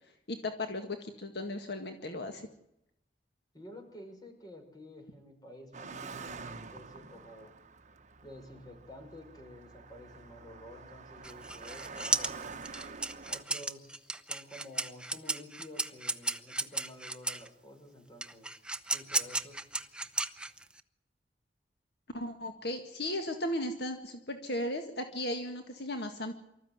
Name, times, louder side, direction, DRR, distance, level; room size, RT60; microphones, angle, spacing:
voice 1, 0.3-2.5 22.1-26.3, left 1 dB, 65° left, 5 dB, 1.9 m, -36 dB
voice 2, 3.5-7.5 8.2-12.6 13.3-18.6 18.9-19.6, left 1 dB, 25° left, 4 dB, 5.9 m, -51 dB
Car passing by, 5.7-13.4, right 4 dB, 45° right, 1.2 m, -47 dB
sound 1, 11.2-17.5 18.2-20.8, right 2 dB, 5° right, 0.8 m, -34 dB
24.5 x 14.0 x 9.5 m, 0.82 s
head